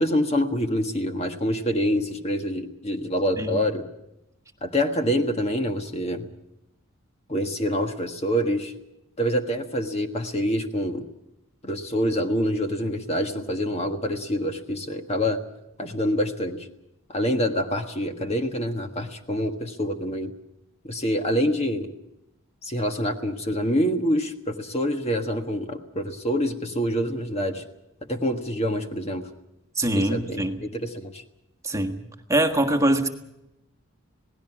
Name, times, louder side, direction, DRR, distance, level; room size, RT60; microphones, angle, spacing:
voice 1, 0.0-3.9 4.6-6.3 7.3-8.7 9.2-11.1 11.6-15.4 15.8-16.7 17.1-20.3 20.8-21.9 22.6-27.6 28.1-29.3 29.9-31.2, equal, 30° left, 5 dB, 1.5 m, -26 dB
voice 2, 29.8-30.6 31.6-32.0 32.3-33.1, right 1 dB, 15° right, 4 dB, 1.5 m, -23 dB
27.5 x 18.5 x 6.0 m, 0.85 s
head